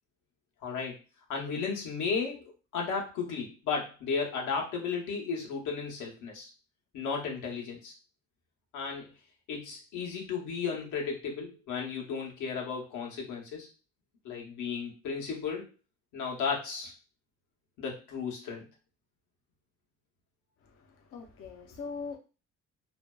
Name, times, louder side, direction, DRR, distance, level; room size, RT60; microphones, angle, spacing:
voice 1, 0.6-1.0 1.3-6.5 6.9-7.9 8.7-9.1 9.5-13.7 14.2-15.6 16.1-16.9 17.8-18.6, left 5 dB, 85° left, -1 dB, 0.9 m, -34 dB
voice 2, 20.6-22.2, left 4 dB, 50° left, 2 dB, 0.5 m, -42 dB
2.5 x 2.2 x 2.2 m, 0.32 s
cardioid pair, 90°, 30 cm